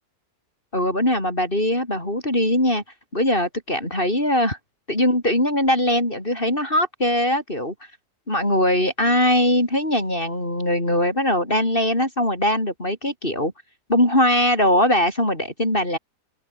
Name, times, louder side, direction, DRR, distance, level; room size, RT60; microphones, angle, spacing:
voice 1, 0.7-2.8 3.1-4.6 4.9-7.7 8.3-13.5 13.9-16.0, left 1 dB, 30° left, 7.0 m, -21 dB
open air
omnidirectional pair, 1.8 m